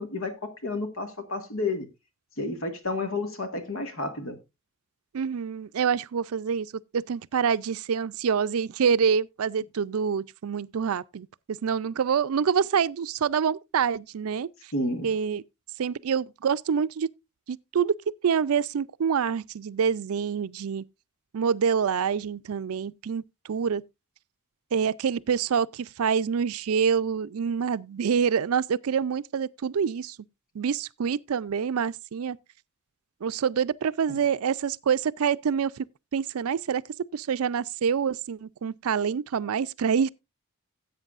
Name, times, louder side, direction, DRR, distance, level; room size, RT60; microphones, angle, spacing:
voice 1, 0.0-1.9 2.4-4.4 14.7-15.1 34.1-34.2, left 2 dB, 65° left, 1.8 m, -31 dB
voice 2, 5.1-14.5 15.0-15.4 15.8-17.1 17.5-18.0 18.2-20.8 21.3-23.2 23.5-23.8 24.7-30.2 30.5-32.4 33.2-35.8 36.1-40.1, right 7 dB, 80° right, 0.4 m, -26 dB
16.0 x 8.1 x 2.4 m
head